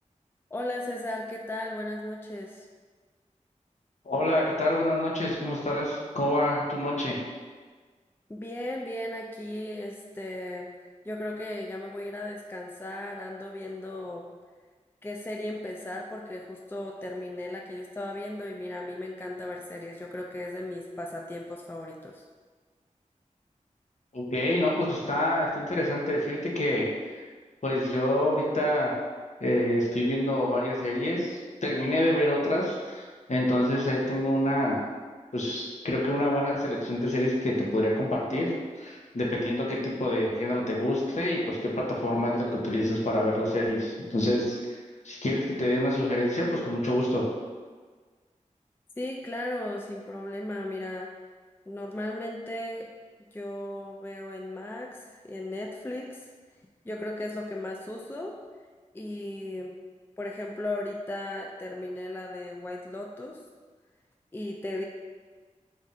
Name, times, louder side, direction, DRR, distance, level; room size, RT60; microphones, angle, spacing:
voice 1, 0.5-2.7 8.3-10.7 11.0-14.3 15.0-22.2 49.0-51.1 51.7-52.9 53.3-56.3 56.8-58.3 58.9-59.8 60.2-63.4 64.3-64.8, left 1 dB, 15° left, 0 dB, 0.4 m, -36 dB
voice 2, 4.1-7.2 24.1-26.9 27.6-28.9 29.4-33.0 33.3-34.8 35.3-44.6 45.0-47.3, left 1 dB, 65° left, -4 dB, 0.8 m, -27 dB
3.6 x 2.5 x 4.0 m, 1.5 s
wide cardioid pair, 50°, 13 cm